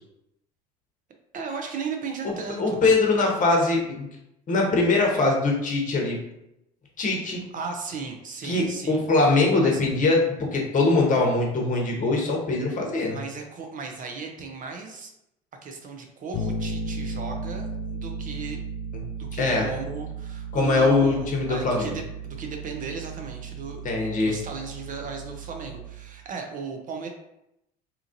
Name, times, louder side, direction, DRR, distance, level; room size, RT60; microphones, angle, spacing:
voice 1, 1.3-2.8 7.5-9.0 9.6-9.8 13.1-15.1 15.6-18.6 19.1-23.9 24.2-27.1, right 5 dB, 40° right, 3 dB, 0.6 m, -36 dB
voice 2, 2.2-4.1 4.5-6.2 7.0-7.4 8.4-13.2 19.3-19.6 20.5-21.9 23.8-24.3, left 3 dB, 40° left, 0 dB, 0.9 m, -22 dB
Bass guitar, 16.3-26.2, right 3 dB, 55° left, 0.4 m, -35 dB
2.9 x 2.4 x 2.6 m, 0.83 s
hypercardioid pair, 70°, 21 cm